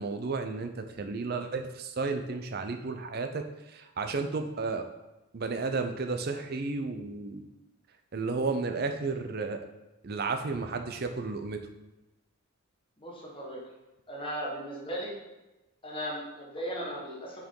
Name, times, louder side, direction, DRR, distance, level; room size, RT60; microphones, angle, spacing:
voice 1, 0.0-3.4 3.7-4.9 5.3-7.4 8.1-9.6 10.0-11.6, right 4 dB, 45° right, 6 dB, 0.5 m, -32 dB
voice 2, 13.0-13.6 14.1-15.1 15.8-17.5, equal, 25° left, -3 dB, 1.5 m, -37 dB
5.6 x 4.5 x 3.8 m, 1.0 s
head